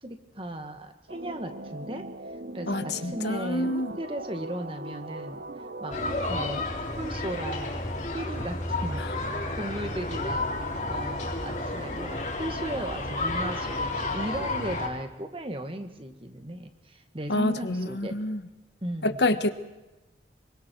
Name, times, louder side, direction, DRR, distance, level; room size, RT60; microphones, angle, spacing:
voice 1, 0.0-2.0 2.5-5.4 5.8-6.0 6.3-6.6 7.0-7.8 8.1-9.2 9.6-10.5 10.9-18.2 18.8-19.2, right 1 dB, 30° right, 6 dB, 1.9 m, -36 dB
sound 1, 1.1-6.5, right 2 dB, 65° right, 1.0 m, -40 dB
voice 2, 2.7-3.9 9.0-9.1 17.3-18.4 19.0-19.5, left 1 dB, 75° left, 10 dB, 1.3 m, -27 dB
sound 2, 5.9-14.9, left 2 dB, 45° left, 3.9 m, -31 dB
26.0 x 24.0 x 4.7 m, 1.0 s
head